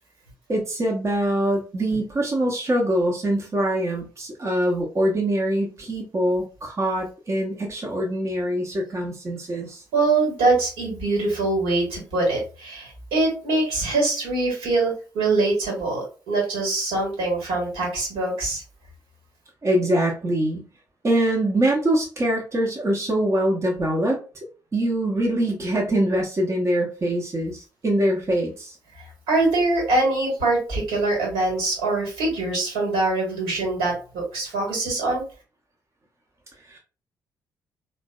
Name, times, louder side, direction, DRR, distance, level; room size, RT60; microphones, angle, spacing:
voice 1, 0.5-9.8 19.6-20.6 21.0-24.2 24.7-28.8 36.7-36.8, right 1 dB, 30° right, -1 dB, 0.7 m, -23 dB
voice 2, 9.9-18.6 29.0-35.2, right 2 dB, 70° right, -2 dB, 1.3 m, -23 dB
3.2 x 2.1 x 2.2 m, 0.35 s
figure-of-eight pair, 40°, 10 cm